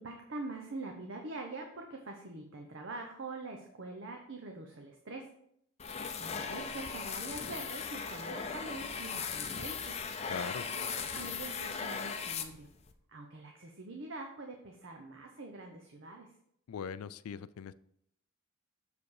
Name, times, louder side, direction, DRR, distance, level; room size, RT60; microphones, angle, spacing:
voice 1, 0.0-5.3 6.2-10.0 10.7-10.8 11.1-12.7 13.1-16.3, right 2 dB, 60° right, 2 dB, 0.8 m, -44 dB
sound 1, 5.8-12.9, left 5 dB, 30° left, 0.5 m, -38 dB
voice 2, 10.3-10.6 16.7-17.7, left 7 dB, 90° left, 16 dB, 0.4 m, -40 dB
7.0 x 5.1 x 4.7 m, 0.69 s
head